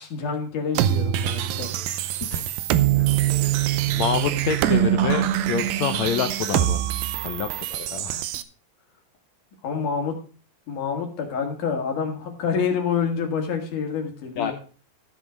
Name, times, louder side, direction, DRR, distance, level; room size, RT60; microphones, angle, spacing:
voice 1, 0.0-1.7 3.0-3.1 8.1-8.2 9.6-10.2 10.7-14.5, left 6 dB, 60° left, 3 dB, 3.4 m, -27 dB
sound 1, 0.7-8.4, right 12 dB, 85° right, 2.4 m, -24 dB
voice 2, 2.2-2.6 3.9-6.9 7.2-8.2 14.4-14.5, left 8 dB, 90° left, 8 dB, 1.5 m, -27 dB
14.5 x 6.3 x 5.1 m, 0.37 s
omnidirectional pair, 4.1 m